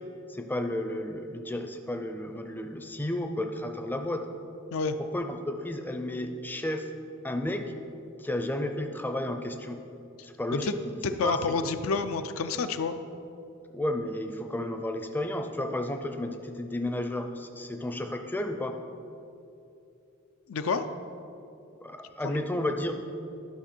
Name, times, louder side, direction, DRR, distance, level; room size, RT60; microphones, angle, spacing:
voice 1, 0.3-4.2 5.0-6.9 7.2-7.7 8.2-9.8 10.2-10.8 11.2-11.7 13.7-18.8 21.8-22.9, left 1 dB, 10° left, 5 dB, 0.4 m, -32 dB
voice 2, 11.0-13.0 20.5-20.8 22.2-22.4, left 4 dB, 85° left, 9 dB, 0.5 m, -29 dB
11.5 x 5.9 x 4.4 m, 2.7 s
head